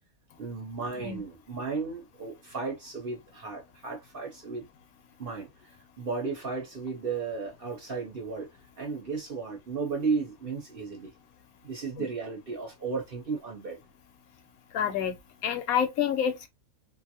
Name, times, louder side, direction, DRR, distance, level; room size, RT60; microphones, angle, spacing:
voice 1, 0.4-4.7 5.2-8.5 8.8-11.1 11.6-13.8, right 4 dB, 50° right, 0.8 m, -34 dB
voice 2, 14.7-15.1 15.4-16.5, left 8 dB, 75° left, 1.1 m, -27 dB
2.7 x 2.5 x 2.7 m
omnidirectional pair, 1.6 m